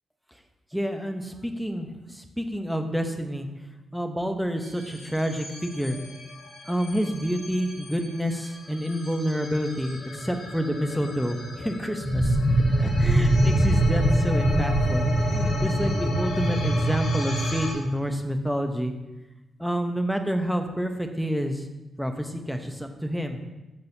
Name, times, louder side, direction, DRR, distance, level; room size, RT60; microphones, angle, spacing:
voice 1, 0.7-3.5 3.9-6.0 6.6-12.4 12.8-18.9 19.6-21.6 22.0-23.4, equal, ahead, 5 dB, 0.7 m, -28 dB
sound 1, 4.6-17.7, right 1 dB, 60° left, 2.8 m, -25 dB
14.0 x 6.3 x 2.7 m, 1.0 s
wide cardioid pair, 155°, 0 cm